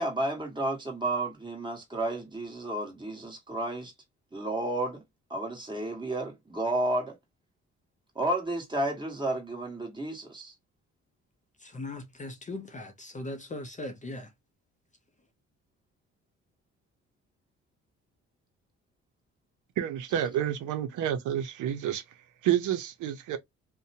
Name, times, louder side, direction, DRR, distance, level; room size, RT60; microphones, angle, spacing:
voice 1, 0.0-3.9 4.3-5.0 5.3-7.2 8.1-10.5, right 1 dB, 15° right, 1.3 m, -31 dB
voice 2, 11.6-14.3, left 2 dB, 25° left, 0.5 m, -39 dB
voice 3, 19.8-22.0 22.4-23.4, right 10 dB, 80° right, 0.6 m, -29 dB
2.6 x 2.1 x 2.7 m
cardioid pair, 90°, 30 cm